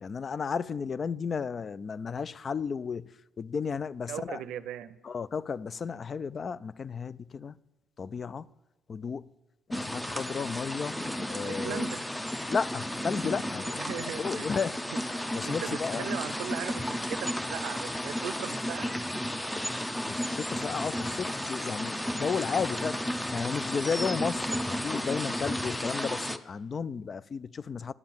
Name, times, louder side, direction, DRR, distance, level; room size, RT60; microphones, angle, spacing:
voice 1, 0.0-4.4 5.0-7.6 8.0-8.5 8.9-9.3 9.7-11.8 12.5-14.7 15.3-16.1 20.0-27.9, left 6 dB, 40° left, 0.3 m, -33 dB
voice 2, 4.1-5.0 11.4-12.0 13.8-14.5 14.9-15.0 15.4-19.0, right 10 dB, 75° right, 0.5 m, -38 dB
sound 1, 9.7-26.4, left 1 dB, 10° left, 0.6 m, -33 dB
9.7 x 7.4 x 7.1 m
supercardioid pair, 80°, 0 cm